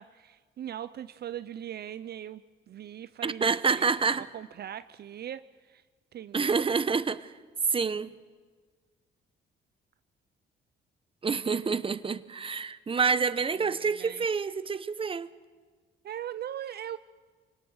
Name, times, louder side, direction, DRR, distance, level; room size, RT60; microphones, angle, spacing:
voice 1, 0.0-3.9 4.2-5.8 6.1-6.7 13.7-14.3 16.0-17.0, right 10 dB, 55° right, 0.5 m, -40 dB
voice 2, 3.2-4.3 6.3-7.3 7.7-8.1 11.2-15.3, right 5 dB, 25° right, 0.8 m, -28 dB
24.5 x 18.5 x 6.5 m
cardioid pair, 90°, 20 cm